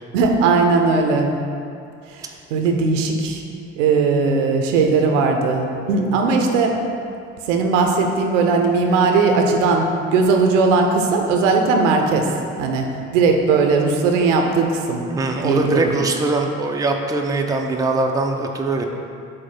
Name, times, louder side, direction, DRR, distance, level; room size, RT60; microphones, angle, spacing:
voice 1, 0.1-1.3 2.1-3.4 3.8-6.8 7.5-12.3 12.6-12.9 13.1-15.0 15.4-15.9, right 4 dB, 70° right, 3 dB, 0.7 m, -18 dB
voice 2, 15.1-18.9, right 2 dB, 10° right, 2 dB, 0.5 m, -22 dB
7.8 x 2.6 x 5.5 m, 2.5 s
figure-of-eight pair, 45°, 38 cm